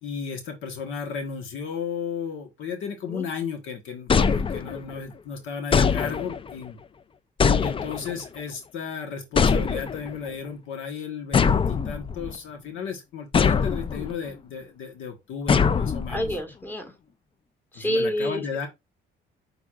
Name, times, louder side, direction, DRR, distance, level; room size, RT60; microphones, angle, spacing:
voice 1, 0.0-6.8 7.6-16.4 17.7-18.7, left 6 dB, 85° left, 1.2 m, -34 dB
sound 1, 4.1-5.0 5.7-6.5 7.4-8.3 9.4-10.2 11.3-12.4 13.3-14.1 15.5-16.4, left 6 dB, 25° left, 0.4 m, -22 dB
voice 2, 16.1-16.9 17.7-18.4, equal, 10° left, 1.7 m, -27 dB
6.0 x 3.5 x 2.4 m
cardioid pair, 90°, 20 cm